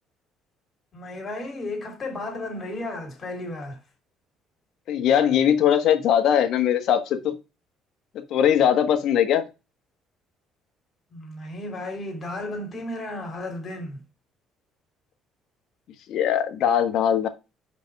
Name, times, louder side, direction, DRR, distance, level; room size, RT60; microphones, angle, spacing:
voice 1, 0.9-3.8 11.1-14.0, left 2 dB, 30° left, 3.0 m, -34 dB
voice 2, 4.9-7.4 8.3-9.4 16.1-17.3, left 9 dB, 65° left, 1.3 m, -20 dB
5.4 x 5.2 x 4.7 m
cardioid pair, 110°, 0 cm